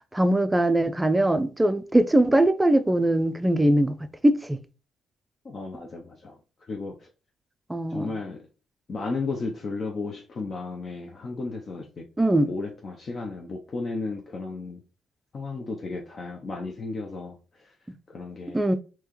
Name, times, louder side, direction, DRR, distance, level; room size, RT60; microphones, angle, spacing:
voice 1, 0.1-4.0 4.2-4.6 7.7-8.1 12.2-12.5 18.5-18.8, right 1 dB, 10° right, 0.4 m, -21 dB
voice 2, 5.4-6.4 6.7-7.1 7.9-8.5 8.9-12.0 12.5-14.8 15.3-17.7 18.1-18.8, left 3 dB, 45° left, 0.6 m, -34 dB
4.5 x 2.8 x 3.0 m
cardioid pair, 90°, 0 cm